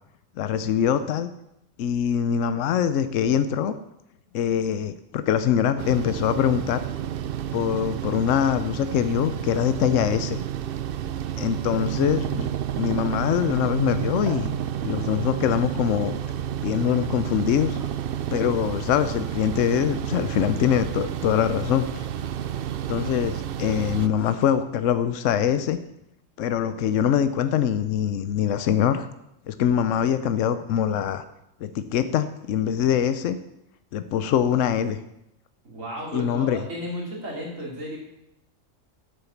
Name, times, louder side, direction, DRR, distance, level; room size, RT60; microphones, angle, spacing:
voice 1, 0.4-1.3 1.8-3.7 4.3-6.8 7.5-10.4 11.4-12.5 12.7-14.5 14.8-16.2 16.6-17.8 18.3-22.0 22.9-25.8 26.4-29.1 29.5-31.2 31.6-33.4 33.9-35.0 36.1-36.6, left 9 dB, 75° left, 11 dB, 1.0 m, -23 dB
sound 1, 5.8-24.1, right 10 dB, 60° right, 0.6 m, -30 dB
sound 2, 11.4-13.8 14.1-14.6 15.0-15.3 16.0-16.2 17.0-22.8 23.6-25.9 26.5-26.6, left 1 dB, 55° left, 3.0 m, -50 dB
voice 2, 35.6-38.0, equal, 85° right, -3 dB, 3.7 m, -33 dB
9.0 x 7.5 x 7.1 m, 0.83 s
omnidirectional pair, 1.3 m